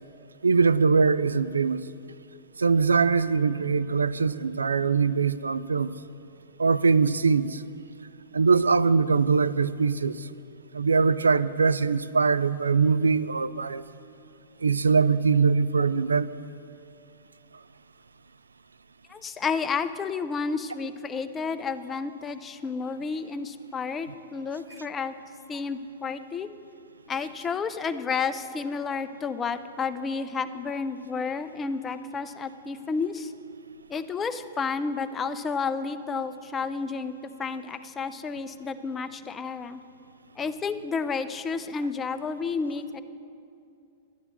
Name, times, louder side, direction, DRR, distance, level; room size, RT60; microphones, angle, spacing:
voice 1, 0.4-1.8 2.6-5.9 6.6-7.6 8.3-10.3 10.7-13.8 14.6-16.3, right 5 dB, 85° right, 15 dB, 0.4 m, -22 dB
voice 2, 19.1-25.1 25.5-26.5 27.1-33.3 33.9-37.1 37.4-39.8 40.4-43.0, left 5 dB, 20° left, 10 dB, 0.6 m, -31 dB
11.5 x 10.0 x 6.8 m, 2.5 s
hypercardioid pair, 105°, 0 cm